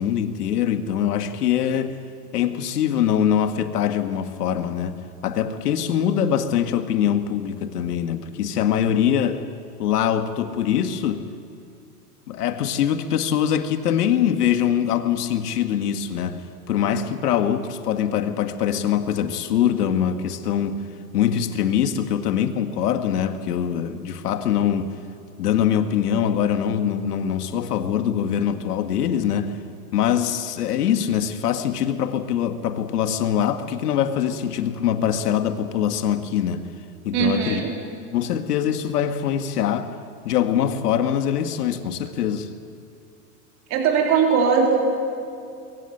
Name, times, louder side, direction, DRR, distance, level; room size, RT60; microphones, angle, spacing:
voice 1, 0.0-2.0 2.3-9.4 9.8-11.3 12.3-20.8 21.1-25.0 25.4-29.6 29.9-36.6 37.0-37.6 38.1-39.9 40.3-42.5, left 9 dB, 75° left, 8 dB, 1.8 m, -23 dB
voice 2, 37.1-37.7 43.7-44.8, right 6 dB, 35° right, 0 dB, 3.6 m, -19 dB
22.5 x 16.0 x 8.9 m, 2.6 s
hypercardioid pair, 135°, 47 cm